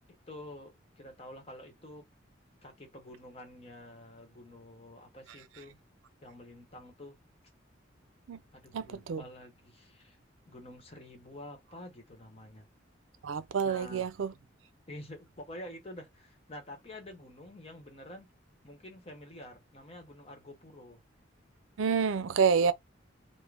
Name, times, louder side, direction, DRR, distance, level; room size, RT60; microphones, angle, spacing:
voice 1, 0.1-2.0 2.6-5.8 6.2-7.2 8.5-10.2 10.5-12.7 13.6-14.1 14.9-18.3 18.6-21.0, left 1 dB, 30° left, 1.0 m, -48 dB
voice 2, 8.7-9.2 13.2-14.3 21.8-22.7, right 6 dB, 85° right, 0.4 m, -28 dB
3.7 x 2.1 x 3.3 m
head